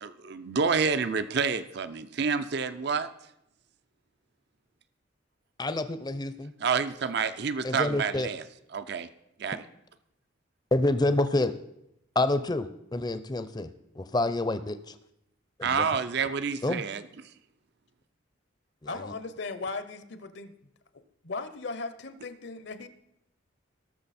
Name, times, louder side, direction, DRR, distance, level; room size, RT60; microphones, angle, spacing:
voice 1, 0.0-3.1 6.6-8.4 8.7-9.1 9.4-9.6 15.6-17.0, right 5 dB, 55° right, 12 dB, 0.5 m, -28 dB
voice 2, 5.6-6.5 7.6-8.3 10.7-11.5 12.2-13.7 14.0-14.9 15.6-15.8 16.6-16.8 18.9-19.1, left 2 dB, 20° left, 12 dB, 0.6 m, -28 dB
voice 3, 18.9-20.5 20.9-22.9, left 3 dB, 60° left, 12 dB, 0.8 m, -37 dB
18.5 x 6.6 x 4.2 m, 0.83 s
head